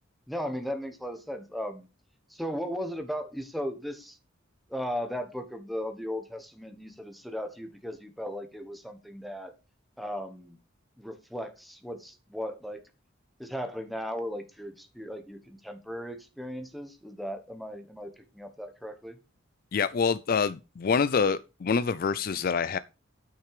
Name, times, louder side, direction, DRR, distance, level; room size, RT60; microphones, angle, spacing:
voice 1, 0.3-1.9 2.3-4.2 4.7-9.5 10.0-10.6 11.0-12.8 13.4-19.2, equal, ahead, 1.3 m, -36 dB
voice 2, 19.7-22.8, left 5 dB, 45° left, 0.4 m, -26 dB
9.1 x 6.5 x 4.9 m
head